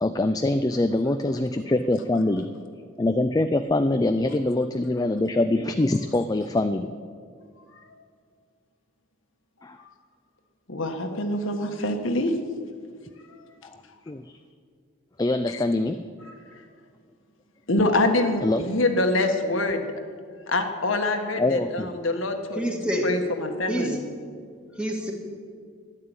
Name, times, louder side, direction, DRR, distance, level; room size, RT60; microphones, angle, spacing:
voice 1, 0.0-6.9 9.6-9.8 13.6-13.8 14.1-14.4 15.2-16.1 18.4-18.6 21.4-21.9, left 2 dB, 20° left, 8 dB, 0.4 m, -24 dB
voice 2, 10.7-12.3 15.5-15.6 17.7-19.9 20.5-22.6 23.0-24.0, left 2 dB, 75° left, 4 dB, 1.5 m, -25 dB
voice 3, 22.6-23.1 23.7-24.0 24.8-25.1, equal, 5° right, 0 dB, 2.0 m, -27 dB
12.5 x 10.5 x 8.9 m, 2.1 s
head